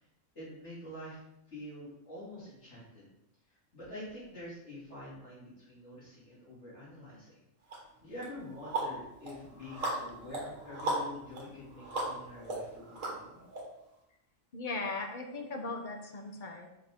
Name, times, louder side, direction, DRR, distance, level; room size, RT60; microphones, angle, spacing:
voice 1, 0.3-1.2 1.5-3.1 3.5-7.4 8.0-13.5, left 1 dB, 60° left, -8 dB, 3.1 m, -47 dB
sound 1, 7.7-7.8 8.2-13.6, right 2 dB, 80° right, 1.9 m, -38 dB
voice 2, 14.5-16.7, left 3 dB, 45° left, 4 dB, 0.9 m, -38 dB
5.9 x 5.3 x 3.6 m, 0.84 s
omnidirectional pair, 1.3 m